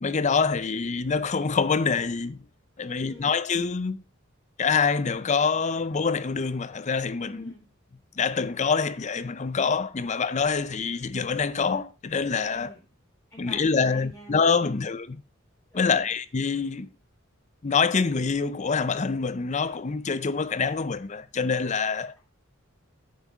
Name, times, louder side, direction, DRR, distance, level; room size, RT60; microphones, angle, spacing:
voice 1, 0.0-2.4 2.8-4.0 4.6-7.5 8.2-12.7 13.4-15.2 15.7-16.9 17.6-22.1, left 5 dB, 35° left, 0.5 m, -26 dB
voice 2, 2.8-3.3 7.2-7.6 12.5-12.8 13.3-14.9 15.7-16.2, equal, 15° left, 4.0 m, -47 dB
9.1 x 7.5 x 3.6 m
head